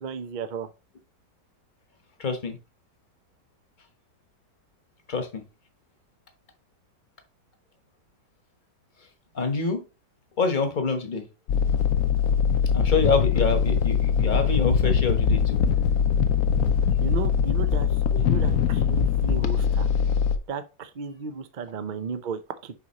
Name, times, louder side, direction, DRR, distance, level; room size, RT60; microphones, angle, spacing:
voice 1, 0.0-0.7 17.0-17.9 18.2-20.0 20.5-22.7, right 6 dB, 80° right, 0.4 m, -34 dB
voice 2, 2.2-2.6 5.1-5.4 9.3-9.8 10.4-11.2 12.7-15.6, left 4 dB, 30° left, 1.0 m, -26 dB
sound 1, 11.5-20.4, left 7 dB, 65° left, 1.0 m, -22 dB
7.0 x 5.1 x 2.9 m
omnidirectional pair, 1.9 m